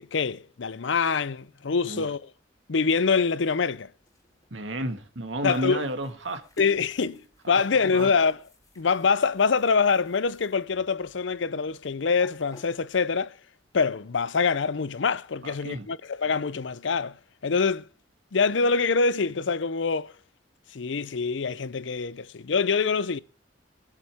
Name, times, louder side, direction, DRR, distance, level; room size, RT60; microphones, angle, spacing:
voice 1, 0.0-2.2 2.7-3.9 5.4-5.8 6.6-7.2 7.5-8.4 8.8-13.3 13.7-17.1 17.4-17.9 18.3-20.1 20.7-23.2, left 5 dB, 70° left, 0.6 m, -25 dB
sound 1, 3.9-13.3, left 1 dB, 20° left, 2.5 m, -51 dB
voice 2, 4.5-6.4 7.4-8.1 15.4-15.9, right 1 dB, 80° right, 1.8 m, -32 dB
23.0 x 8.5 x 3.6 m
head